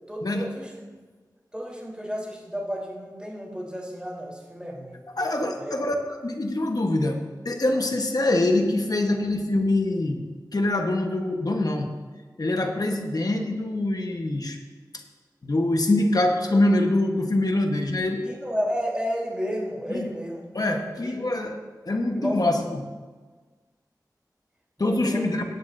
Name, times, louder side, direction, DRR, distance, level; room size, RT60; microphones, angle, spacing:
voice 1, 0.1-0.7 1.5-5.0 5.6-5.7 18.2-20.4 20.8-21.1 22.1-22.5 24.8-25.4, equal, 15° right, -3 dB, 3.6 m, -32 dB
voice 2, 5.1-10.2 10.5-11.9 12.4-14.6 15.4-18.2 19.9-20.1 20.5-21.6 21.9-22.9 24.8-25.4, left 2 dB, 60° left, 3 dB, 1.2 m, -24 dB
17.5 x 9.5 x 2.7 m, 1.4 s
wide cardioid pair, 40°, 7 cm